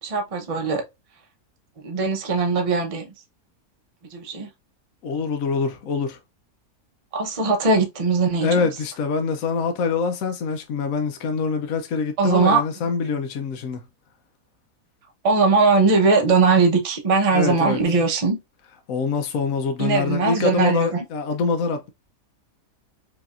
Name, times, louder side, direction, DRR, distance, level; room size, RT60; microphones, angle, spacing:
voice 1, 0.0-0.8 1.8-3.1 4.1-4.5 7.1-8.7 12.2-12.6 15.2-18.4 19.8-21.0, right 4 dB, 30° right, 0.6 m, -20 dB
voice 2, 5.0-6.2 8.4-13.8 17.3-17.8 18.9-21.9, left 5 dB, 70° left, 1.0 m, -25 dB
5.0 x 2.8 x 2.4 m
omnidirectional pair, 1.6 m